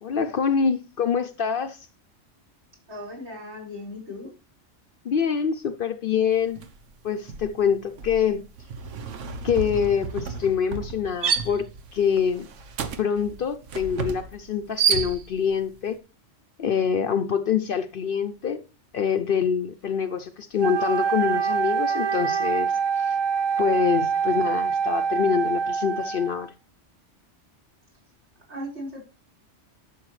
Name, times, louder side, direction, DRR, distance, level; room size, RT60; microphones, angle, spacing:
voice 1, 0.0-1.9 5.0-6.6 7.0-8.4 9.4-11.7 11.9-12.5 13.0-16.0 16.6-18.6 18.9-23.1 23.6-26.5, left 7 dB, 55° left, 0.7 m, -25 dB
voice 2, 2.9-4.3 28.5-29.0, left 1 dB, 65° right, 4.8 m, -37 dB
sound 1, 6.6-6.8 7.1-15.6, right 6 dB, 90° right, 1.2 m, -30 dB
Wind instrument woodwind instrument, 20.6-26.5, right 6 dB, 40° right, 0.4 m, -25 dB
11.5 x 6.9 x 3.1 m
omnidirectional pair, 1.2 m